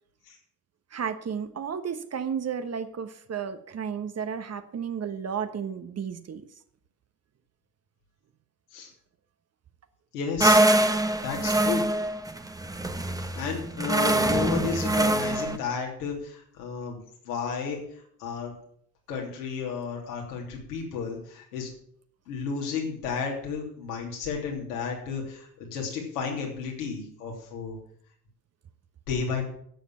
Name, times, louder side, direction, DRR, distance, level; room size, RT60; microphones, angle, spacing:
voice 1, 0.9-6.4, right 7 dB, 30° right, 10 dB, 1.2 m, -33 dB
voice 2, 10.1-10.6 11.2-11.8 13.2-17.8 18.2-18.5 19.1-21.7 22.3-27.8 29.1-29.4, left 6 dB, 75° left, 0 dB, 3.2 m, -32 dB
sound 1, 10.4-15.6, right 1 dB, 5° right, 1.0 m, -24 dB
11.5 x 7.3 x 7.3 m, 0.65 s
hypercardioid pair, 60°, 47 cm